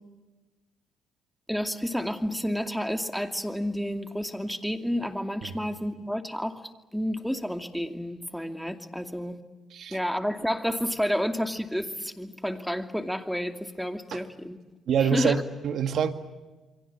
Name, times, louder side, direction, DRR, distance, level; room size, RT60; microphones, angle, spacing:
voice 1, 1.5-6.6 6.9-9.4 9.9-14.6 15.1-15.4, equal, ahead, 7 dB, 2.5 m, -30 dB
voice 2, 14.9-16.1, right 7 dB, 65° right, 9 dB, 2.1 m, -26 dB
28.5 x 23.5 x 8.6 m, 1.2 s
cardioid pair, 90°, 0 cm